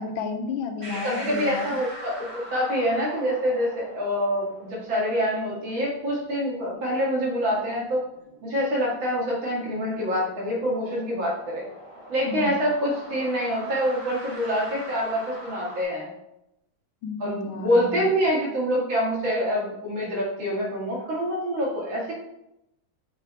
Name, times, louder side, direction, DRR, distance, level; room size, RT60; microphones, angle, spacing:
voice 1, 0.0-1.8 12.3-12.6 17.0-18.1, left 4 dB, 80° left, 5 dB, 1.5 m, -32 dB
sound 1, 0.8-15.8, right 1 dB, 20° right, 0.8 m, -43 dB
voice 2, 1.0-8.0 8.4-11.6 12.1-16.1 17.2-22.1, equal, 65° right, -5 dB, 2.7 m, -26 dB
6.8 x 3.4 x 4.3 m, 0.84 s
omnidirectional pair, 2.2 m